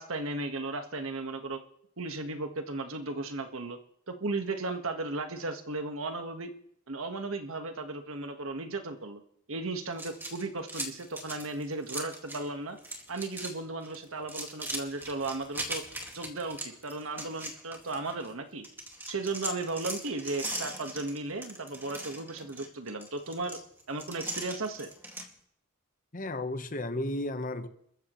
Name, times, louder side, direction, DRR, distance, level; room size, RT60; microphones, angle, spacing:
voice 1, 0.0-1.6 2.0-3.8 4.1-6.5 6.9-9.2 9.5-12.8 13.1-15.8 16.1-18.7 19.1-23.6 23.9-24.9, right 3 dB, 85° right, 1.5 m, -35 dB
sound 1, 9.9-12.5 12.8-13.5 13.8-18.3 18.6-25.3, right 1 dB, 10° right, 2.1 m, -39 dB
voice 2, 26.1-27.7, left 1 dB, 40° left, 1.1 m, -33 dB
28.5 x 14.0 x 3.2 m
head